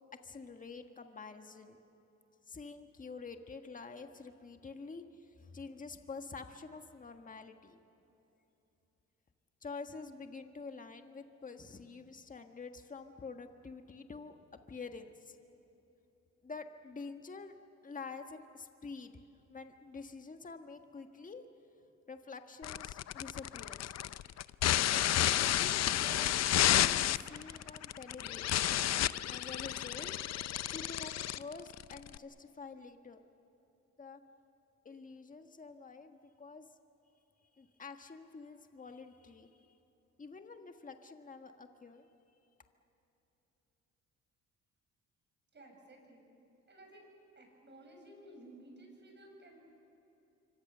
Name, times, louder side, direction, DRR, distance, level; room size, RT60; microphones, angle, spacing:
voice 1, 0.2-1.8 2.5-7.8 9.6-14.4 14.7-15.4 16.4-17.5 17.8-19.2 19.5-21.4 22.1-23.9 24.9-26.3 26.7-28.7 29.2-30.5 30.7-33.2 34.0-34.2 34.8-36.7 37.5-39.7 40.2-42.1, left 4 dB, 25° left, 6 dB, 1.5 m, -48 dB
sound 1, 22.6-32.2, left 12 dB, 60° left, 0.6 m, -31 dB
voice 2, 45.5-46.2 46.7-47.1 47.4-49.6, right 1 dB, 35° right, 1 dB, 7.4 m, -55 dB
27.0 x 25.0 x 6.8 m, 3.0 s
cardioid pair, 90°, 30 cm